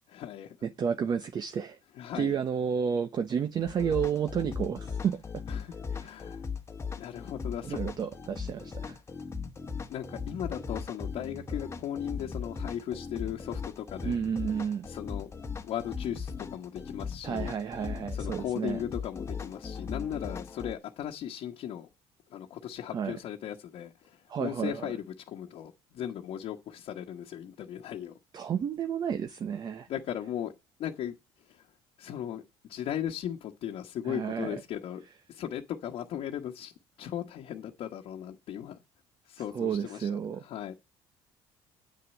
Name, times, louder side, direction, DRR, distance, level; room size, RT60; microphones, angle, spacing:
voice 1, 0.1-0.6 2.0-2.4 5.5-6.4 7.0-7.8 9.9-14.2 14.9-15.3 15.6-17.5 18.1-21.9 22.3-28.2 29.9-30.5 30.8-31.1 31.5-31.7 32.0-32.4 32.7-35.0 35.3-36.7 37.0-38.8 39.3-40.1 40.4-40.7, left 10 dB, 60° left, 1.3 m, -37 dB
voice 2, 0.6-1.8 2.2-5.2 5.9-6.1 7.6-9.0 14.0-14.9 17.2-18.8 22.9-23.2 24.3-24.9 28.3-29.9 34.1-34.5 39.5-40.4, right 7 dB, 40° right, 0.9 m, -31 dB
sound 1, 3.7-20.7, left 5 dB, 25° left, 1.2 m, -38 dB
9.1 x 6.5 x 7.2 m
cardioid pair, 115°, 11 cm